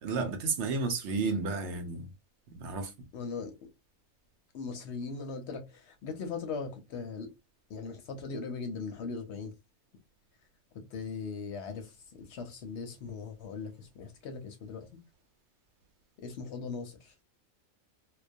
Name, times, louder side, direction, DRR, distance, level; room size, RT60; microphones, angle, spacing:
voice 1, 0.0-2.1 2.5-2.9, right 4 dB, 65° right, 0.8 m, -32 dB
voice 2, 3.1-3.5 4.5-7.3 7.7-9.5 10.7-14.9 16.2-17.1, left 4 dB, 65° left, 0.8 m, -39 dB
2.3 x 2.2 x 2.5 m
omnidirectional pair, 1.3 m